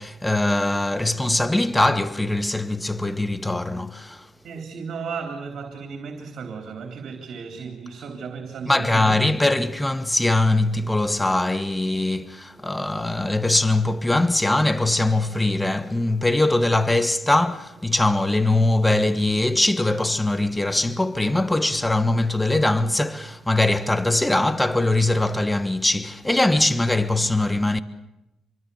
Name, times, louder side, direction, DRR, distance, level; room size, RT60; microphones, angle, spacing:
voice 1, 0.0-4.3 8.7-27.8, left 2 dB, 10° left, 1.3 m, -22 dB
voice 2, 4.4-9.2, right 5 dB, 60° right, 3.8 m, -35 dB
27.0 x 23.5 x 7.1 m
cardioid pair, 90°, 0 cm